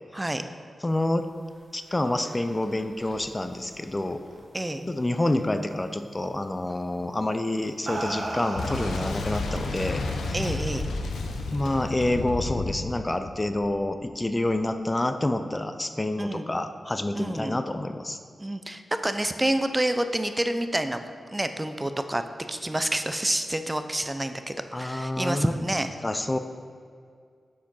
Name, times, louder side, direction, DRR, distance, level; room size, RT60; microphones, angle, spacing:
voice 1, 0.8-1.3 1.7-4.2 4.9-10.0 10.3-10.5 11.5-18.2 24.7-25.6 26.0-26.4, left 1 dB, 25° left, 9 dB, 0.4 m, -28 dB
whiskey on the rocks, 1.8-4.6 5.0-5.4 6.7-6.9 7.5-9.6, right 2 dB, 60° right, 1.4 m, -37 dB
voice 2, 4.5-4.8 10.3-10.9 16.2-16.5 17.1-17.6 18.4-21.0 21.3-22.2 22.5-25.9, right 1 dB, 20° right, 8 dB, 0.5 m, -28 dB
Boom, 8.6-14.1, left 3 dB, 90° left, 0.6 m, -31 dB
7.3 x 4.6 x 5.5 m, 2.2 s
cardioid pair, 40°, 0 cm